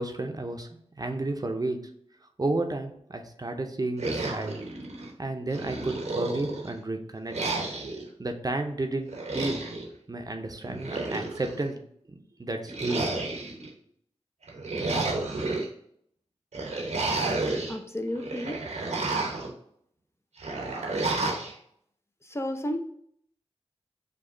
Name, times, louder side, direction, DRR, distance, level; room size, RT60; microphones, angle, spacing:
voice 1, 0.0-1.8 2.4-4.6 5.2-7.3 8.2-9.6 10.1-11.8 12.1-13.1, right 2 dB, 35° right, 5 dB, 0.6 m, -32 dB
sound 1, 4.0-5.1 5.5-6.7 7.3-8.0 9.1-9.9 10.6-11.6 12.7-13.7 14.4-15.7 16.5-17.8 18.2-19.5 20.4-21.5, right 3 dB, 85° right, 0.9 m, -31 dB
voice 2, 17.7-18.6 22.2-22.8, left 1 dB, 25° left, 5 dB, 0.5 m, -32 dB
5.0 x 2.3 x 3.7 m, 0.67 s
cardioid pair, 45°, 11 cm